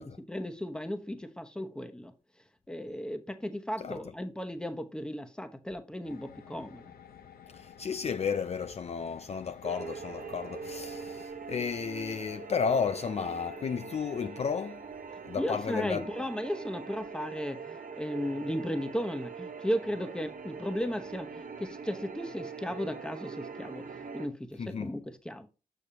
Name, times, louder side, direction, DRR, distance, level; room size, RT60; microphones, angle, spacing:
voice 1, 0.0-2.1 2.7-6.9 15.4-25.5, equal, 5° left, 0.9 m, -35 dB
sound 1, 6.0-11.3, left 8 dB, 90° left, 0.6 m, -52 dB
voice 2, 7.5-14.8 15.2-16.1 24.6-24.9, left 6 dB, 45° left, 0.4 m, -33 dB
sound 2, 9.6-24.3, right 5 dB, 65° right, 0.9 m, -43 dB
6.9 x 6.2 x 2.9 m
cardioid pair, 75°, 15 cm